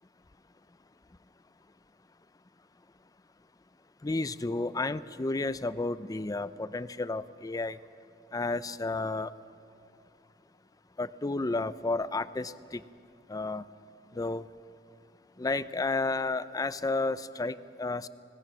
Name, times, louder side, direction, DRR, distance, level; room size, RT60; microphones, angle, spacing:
voice 1, 4.0-7.8 8.3-9.3 11.0-12.8 13.3-13.6 14.1-14.4 15.4-18.1, left 3 dB, 20° left, 15 dB, 0.4 m, -32 dB
25.5 x 18.5 x 6.1 m, 2.6 s
head